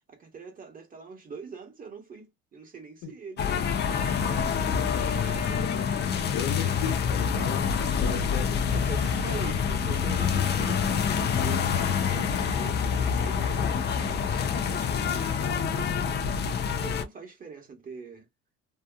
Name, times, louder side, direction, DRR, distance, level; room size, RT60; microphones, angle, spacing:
voice 1, 0.0-3.6 4.2-5.8 8.7-11.8 12.1-18.3, right 5 dB, 25° right, 1.1 m, -44 dB
sound 1, 3.4-17.0, left 7 dB, 35° left, 0.5 m, -27 dB
voice 2, 6.3-8.6, left 8 dB, 75° left, 1.1 m, -35 dB
2.8 x 2.3 x 2.3 m
cardioid pair, 115°, 31 cm